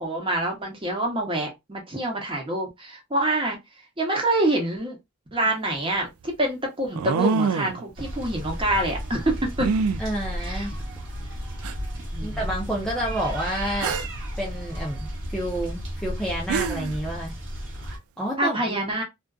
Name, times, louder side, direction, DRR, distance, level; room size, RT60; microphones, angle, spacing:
voice 1, 0.0-3.6 4.0-5.0 5.3-9.7 10.4-10.7 12.1-12.4 18.4-19.0, right 1 dB, 25° right, 0.9 m, -26 dB
sound 1, 5.5-5.6 6.9-7.8 9.6-10.0 11.0-11.1 11.6-11.7 13.8-14.2 16.1-16.2 16.5-17.0, right 5 dB, 75° right, 0.3 m, -25 dB
sound 2, 8.0-18.0, equal, 60° right, 0.9 m, -33 dB
voice 2, 10.0-10.7 12.2-14.0 14.4-17.3 18.2-18.8, right 1 dB, 5° left, 0.5 m, -29 dB
2.4 x 2.4 x 2.3 m
head